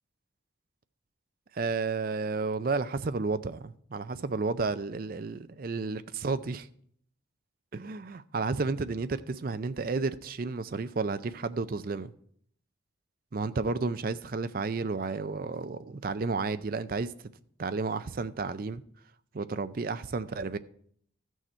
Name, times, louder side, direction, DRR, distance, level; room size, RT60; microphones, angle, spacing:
voice 1, 1.5-6.7 7.7-12.1 13.3-17.1 17.6-18.8 19.3-20.6, right 4 dB, 45° right, 0.4 m, -32 dB
14.5 x 6.3 x 4.4 m
head